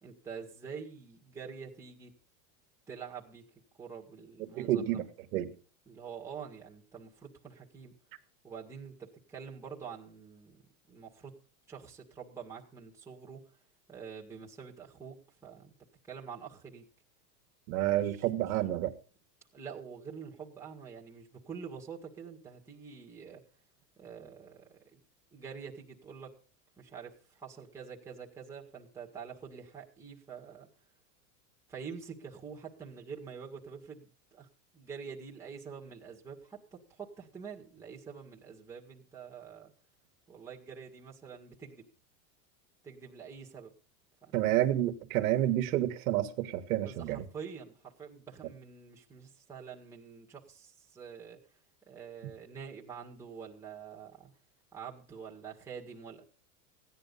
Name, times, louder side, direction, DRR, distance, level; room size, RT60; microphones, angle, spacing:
voice 1, 0.0-2.1 2.9-3.5 3.7-4.8 5.9-7.9 8.4-10.6 10.9-11.3 11.7-13.4 13.9-15.2 15.4-15.7 16.1-16.9 17.9-18.6 19.5-23.4 24.0-25.0 25.3-26.3 26.8-30.7 31.7-34.5 34.7-39.7 40.3-41.9 42.8-43.7 44.2-44.4 46.7-51.4 51.9-54.3 54.7-56.2, right 6 dB, 5° right, 2.0 m, -46 dB
voice 2, 4.6-5.0 5.3-5.5 17.7-18.9 44.3-47.2, right 13 dB, 60° right, 1.7 m, -29 dB
16.5 x 10.5 x 5.5 m
supercardioid pair, 165°, 47 cm